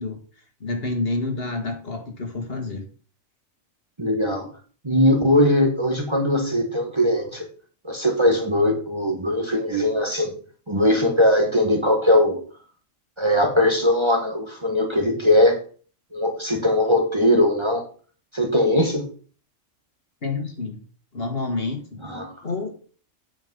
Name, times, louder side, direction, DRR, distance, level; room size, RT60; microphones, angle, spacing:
voice 1, 0.0-2.8 20.2-20.8 21.1-22.0 22.4-22.7, left 3 dB, 45° left, 4 dB, 1.9 m, -29 dB
voice 2, 4.0-4.5 4.8-7.4 7.8-10.3 10.7-12.4 13.2-15.6 16.1-17.9 18.3-19.0 22.0-22.3, left 1 dB, 20° right, 2 dB, 1.4 m, -20 dB
9.0 x 5.2 x 5.3 m, 0.41 s
omnidirectional pair, 1.4 m